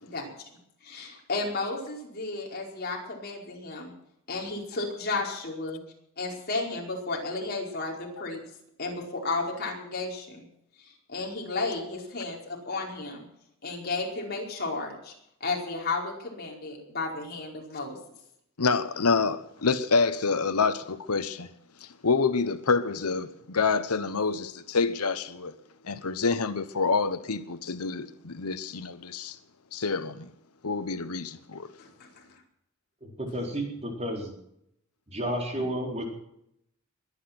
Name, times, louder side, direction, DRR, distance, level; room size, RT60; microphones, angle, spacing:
voice 1, 0.8-3.9 4.3-5.8 6.2-8.4 8.8-10.4 10.8-13.2 13.6-15.1 15.4-18.0 31.8-32.2, left 3 dB, 45° left, 4.7 m, -33 dB
voice 2, 18.6-21.5 21.8-25.5 25.8-29.4 29.7-30.3 30.6-31.7, left 4 dB, 90° left, 1.0 m, -27 dB
voice 3, 33.0-34.3 35.1-36.0, right 1 dB, 30° right, 4.2 m, -32 dB
22.5 x 10.0 x 6.0 m
head